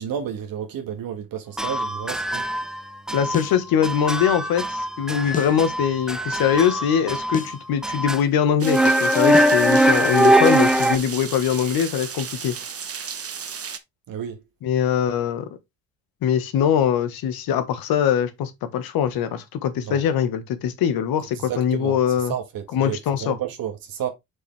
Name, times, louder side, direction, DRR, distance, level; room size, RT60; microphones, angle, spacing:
voice 1, 0.0-2.5 14.1-14.4 19.8-20.0 21.4-24.1, right 9 dB, 60° right, 1.7 m, -31 dB
sound 1, 1.6-2.8 3.1-3.6 3.8-7.6 7.8-8.2 8.6-11.0, right 1 dB, ahead, 0.9 m, -21 dB
voice 2, 3.1-12.5 14.6-15.4 16.2-22.3 22.7-23.3, left 8 dB, 65° left, 1.5 m, -22 dB
sound 2, 3.3-3.6 5.3-5.6 7.3-7.6 9.3-9.6, left 6 dB, 20° left, 0.5 m, -31 dB
sound 3, 8.6-13.8, right 6 dB, 35° right, 1.3 m, -34 dB
6.4 x 5.2 x 3.4 m
hypercardioid pair, 55°, 38 cm